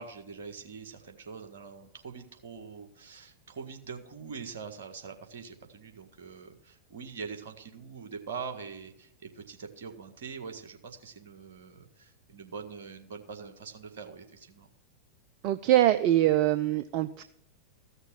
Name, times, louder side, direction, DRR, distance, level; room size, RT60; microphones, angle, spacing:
voice 1, 0.0-14.7, right 5 dB, 60° right, 5 dB, 1.8 m, -43 dB
voice 2, 15.4-17.2, right 13 dB, 45° right, 11 dB, 0.5 m, -23 dB
14.5 x 6.6 x 6.4 m, 0.69 s
figure-of-eight pair, 90°, 0 cm